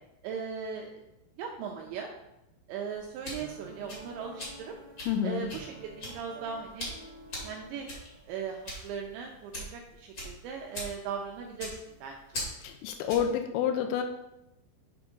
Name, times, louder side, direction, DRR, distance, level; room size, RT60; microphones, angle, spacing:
voice 1, 0.2-0.9 1.4-2.1 2.7-4.7 5.2-5.7 6.0-6.9 7.4-7.9 8.3-11.7 12.0-12.5, right 6 dB, 90° right, 2 dB, 2.6 m, -38 dB
sound 1, 2.9-13.4, left 1 dB, 60° left, 1.0 m, -42 dB
Piano, 3.4-8.7, right 4 dB, 75° right, 2.8 m, -50 dB
voice 2, 5.1-5.5 12.6-14.0, left 8 dB, 90° left, 5 dB, 2.6 m, -29 dB
9.1 x 3.5 x 5.3 m, 0.89 s
omnidirectional pair, 5.8 m